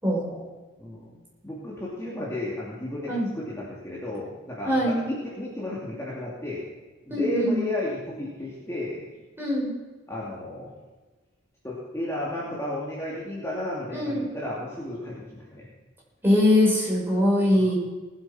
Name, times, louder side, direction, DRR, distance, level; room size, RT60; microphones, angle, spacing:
voice 1, 0.0-0.4 3.1-3.3 4.7-5.0 7.1-7.6 9.4-9.7 13.9-14.2 16.2-17.7, left 1 dB, 10° right, -5 dB, 5.4 m, -22 dB
voice 2, 0.8-1.1 1.4-6.6 7.1-9.0 10.1-10.7 11.6-15.7 17.5-17.7, left 1 dB, 15° left, -6 dB, 2.6 m, -33 dB
19.5 x 8.5 x 6.0 m, 1.2 s
head